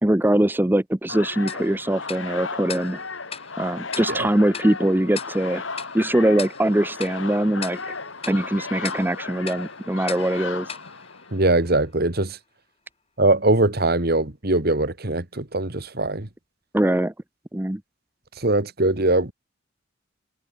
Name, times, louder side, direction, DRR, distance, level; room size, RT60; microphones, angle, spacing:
voice 1, 0.0-3.0 3.6-5.6 5.9-7.9 8.3-10.8 16.7-17.1 17.5-17.8, right 1 dB, 10° right, 0.6 m, -22 dB
sound 1, 1.1-11.6, left 4 dB, 80° left, 4.8 m, -35 dB
Tick-tock, 1.5-11.9, left 6 dB, 30° left, 6.8 m, -40 dB
voice 2, 11.3-12.4 13.2-16.3 18.4-19.3, right 2 dB, 50° right, 2.3 m, -21 dB
head